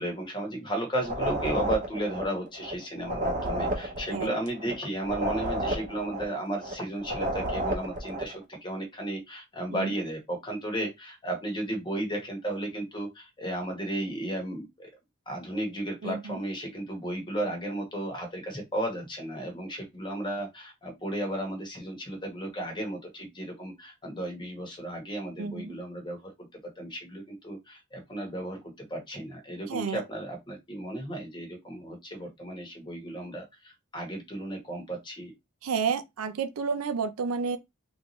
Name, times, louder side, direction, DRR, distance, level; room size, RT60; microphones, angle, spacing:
voice 1, 0.0-14.9 15.3-26.3 26.8-28.6 28.9-35.3, right 1 dB, 20° left, 1.0 m, -34 dB
sound 1, 1.0-8.4, right 1 dB, 35° right, 0.8 m, -31 dB
voice 2, 16.0-16.4 25.4-25.8 29.7-30.0 35.6-37.6, right 5 dB, 75° right, 0.5 m, -31 dB
3.4 x 2.6 x 3.0 m
head